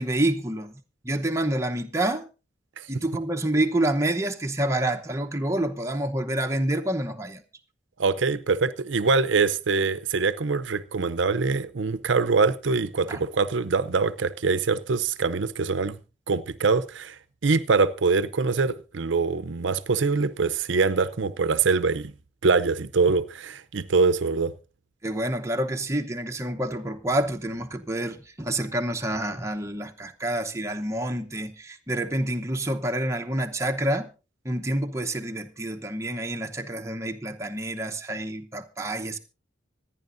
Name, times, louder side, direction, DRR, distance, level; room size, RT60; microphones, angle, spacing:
voice 1, 0.0-2.3 2.9-7.4 13.1-13.2 25.0-34.1 34.4-39.2, right 1 dB, 15° right, 0.9 m, -28 dB
voice 2, 8.0-16.0 16.3-22.1 22.4-24.5, right 4 dB, 80° right, 0.6 m, -24 dB
25.0 x 10.0 x 2.6 m
head